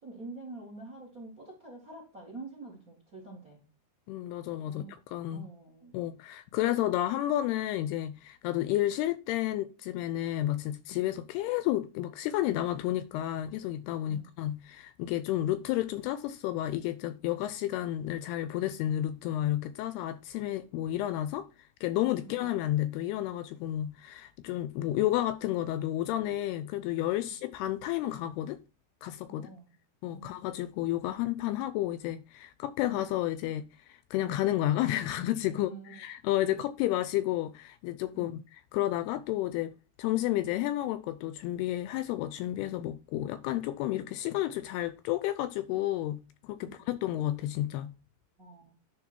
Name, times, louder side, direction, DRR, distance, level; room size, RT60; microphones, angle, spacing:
voice 1, 0.0-3.6 4.6-4.9 5.3-5.9 14.1-14.3 22.2-22.4 29.3-29.7 30.1-30.3 32.8-33.0 35.5-36.0 38.1-38.3 46.6-46.9 48.4-48.7, right 3 dB, 35° right, 1.4 m, -46 dB
voice 2, 4.1-5.5 5.9-21.5 21.8-28.6 29.0-29.5 30.0-47.9, left 14 dB, 85° left, 2.4 m, -31 dB
11.0 x 3.8 x 4.4 m
omnidirectional pair, 4.9 m